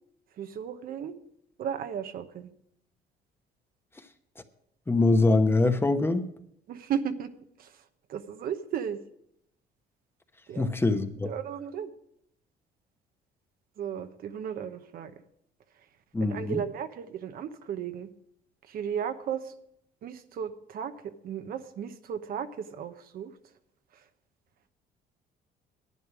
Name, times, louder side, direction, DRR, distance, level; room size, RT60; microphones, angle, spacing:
voice 1, 0.4-1.2 1.6-2.5 6.7-7.3 7.6-7.8 8.1-9.0 10.5-10.7 11.2-11.9 13.8-15.1 16.2-18.1 18.7-19.5 20.0-23.3, right 8 dB, 60° right, 1.0 m, -35 dB
voice 2, 4.9-6.2 10.6-11.3 16.1-16.6, left 2 dB, 15° left, 1.0 m, -23 dB
11.0 x 9.4 x 6.1 m
cardioid pair, 110°, 17 cm